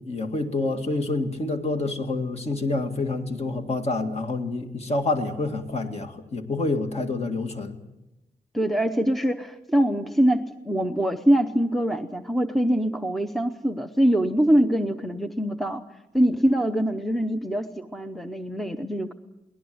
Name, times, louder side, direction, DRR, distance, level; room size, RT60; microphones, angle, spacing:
voice 1, 0.0-7.8, left 2 dB, 40° left, 5 dB, 2.1 m, -27 dB
voice 2, 8.5-15.8 16.1-19.1, equal, ahead, 7 dB, 0.8 m, -23 dB
23.0 x 18.5 x 7.8 m, 0.97 s
wide cardioid pair, 160°, 17 cm